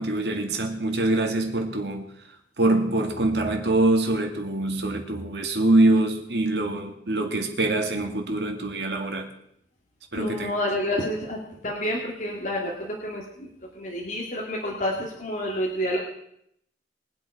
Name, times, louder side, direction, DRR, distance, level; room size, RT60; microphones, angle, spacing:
voice 1, 0.0-2.1 2.6-9.3 10.1-10.5, right 2 dB, 70° right, 2.3 m, -24 dB
voice 2, 10.2-11.4 11.6-13.5 13.7-16.0, equal, 45° left, 2.3 m, -29 dB
23.0 x 8.0 x 4.9 m
head